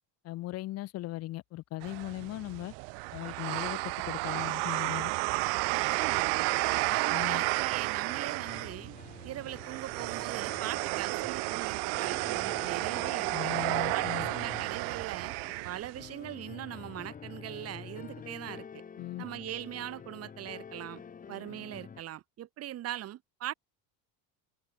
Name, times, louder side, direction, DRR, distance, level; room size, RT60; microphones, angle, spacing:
voice 1, 0.2-2.7 3.1-3.8 4.1-5.1 7.1-7.4 13.3-14.3 19.0-19.2, left 17 dB, 35° left, 0.8 m, -38 dB
sound 1, 1.8-16.1, right 40 dB or more, 85° right, 1.6 m, -32 dB
voice 2, 5.7-6.6 6.8-8.9 9.2-13.5 13.9-15.3 15.6-18.8 19.2-21.0 21.3-23.5, right 13 dB, 35° right, 3.4 m, -40 dB
sound 2, 7.0-22.0, left 6 dB, 20° left, 4.0 m, -48 dB
cardioid pair, 180°, 42 cm